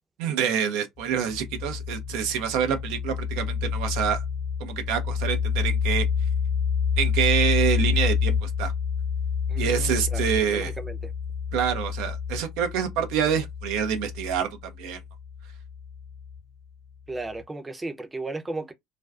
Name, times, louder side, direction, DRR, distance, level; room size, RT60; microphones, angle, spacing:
voice 1, 0.2-4.2 4.6-6.1 7.0-8.7 9.6-10.7 11.5-14.5 14.8-15.0, right 8 dB, 70° right, 0.5 m, -26 dB
sound 1, 1.0-16.4, left 6 dB, 45° left, 0.9 m, -28 dB
voice 2, 9.5-11.1 17.1-18.7, right 2 dB, 20° right, 0.6 m, -35 dB
2.4 x 2.2 x 2.3 m
hypercardioid pair, 60°, 0 cm